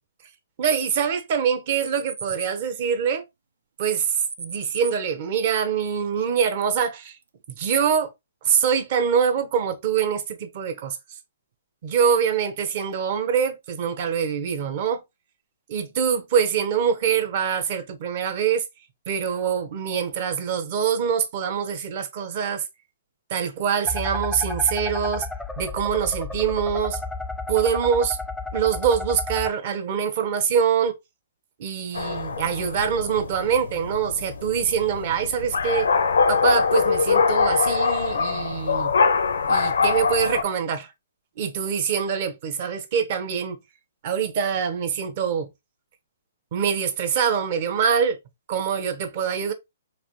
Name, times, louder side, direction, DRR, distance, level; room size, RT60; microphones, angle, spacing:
voice 1, 0.6-3.2 3.8-7.2 7.6-8.1 8.4-11.0 11.8-15.0 15.7-18.6 19.1-22.6 23.3-25.3 25.6-27.0 27.5-28.2 28.5-30.9 31.6-35.9 36.3-38.9 39.5-40.9 41.4-43.6 44.0-45.5 46.5-48.2 48.5-49.5, right 7 dB, 45° right, 0.8 m, -24 dB
sound 1, 1.7-2.5 3.9-4.9, right 5 dB, 85° right, 0.6 m, -35 dB
sound 2, 23.9-29.5, left 3 dB, 5° left, 0.3 m, -32 dB
sound 3, 31.9-40.4, left 5 dB, 90° left, 0.6 m, -23 dB
4.0 x 2.5 x 3.0 m
hypercardioid pair, 150°, 0 cm